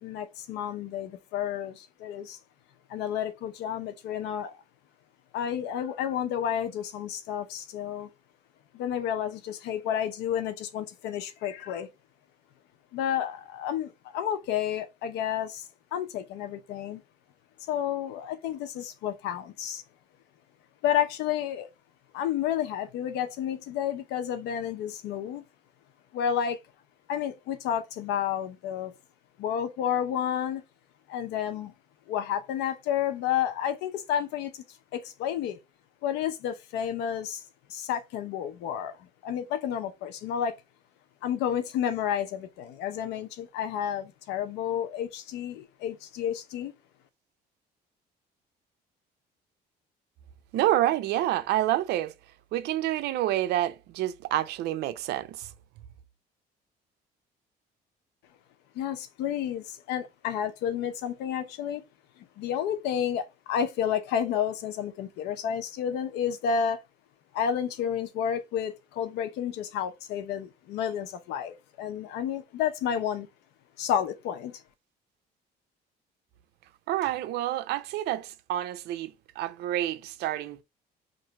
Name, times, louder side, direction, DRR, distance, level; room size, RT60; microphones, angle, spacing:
voice 1, 0.0-2.4 2.9-4.5 5.3-8.1 8.7-11.9 12.9-17.0 17.7-19.8 20.8-21.7 22.1-25.4 26.1-26.6 27.1-28.9 29.4-30.6 31.1-31.7 32.1-34.6 34.9-35.6 36.0-37.4 37.7-40.6 41.2-46.7 58.7-61.8 62.4-66.8 67.3-73.3 73.8-74.6, left 9 dB, 90° left, 0.7 m, -31 dB
voice 2, 50.5-52.1 52.5-55.5 76.9-80.6, right 14 dB, 80° right, 0.5 m, -28 dB
3.0 x 2.6 x 4.4 m
cardioid pair, 110°, 17 cm